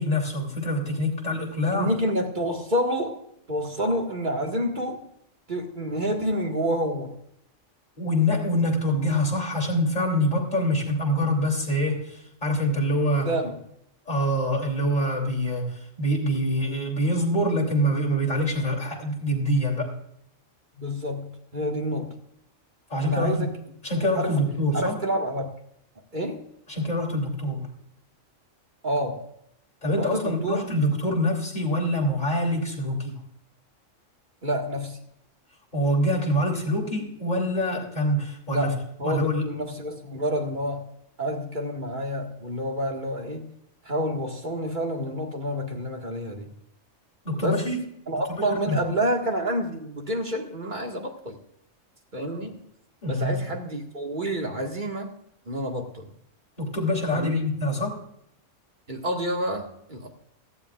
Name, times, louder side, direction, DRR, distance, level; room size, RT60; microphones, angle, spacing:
voice 1, 0.0-1.9 8.0-13.3 14.1-20.0 22.9-23.5 23.8-25.0 26.7-27.7 29.8-33.1 35.7-38.7 39.0-39.5 47.2-47.8 48.3-48.8 53.0-53.5 56.6-58.0, equal, 35° left, -1 dB, 3.3 m, -25 dB
voice 2, 1.6-3.2 3.5-5.1 5.5-7.2 13.0-13.6 20.8-22.2 23.0-23.5 24.2-24.4 24.7-25.5 26.1-26.5 28.8-29.3 30.0-30.7 34.4-35.0 38.5-40.9 41.2-43.5 43.8-46.5 47.4-47.6 48.1-51.4 52.1-52.6 53.1-55.1 55.5-56.1 57.1-57.3 58.9-60.1, equal, 40° right, 2 dB, 2.0 m, -28 dB
17.5 x 13.5 x 2.5 m, 0.73 s
omnidirectional pair, 1.3 m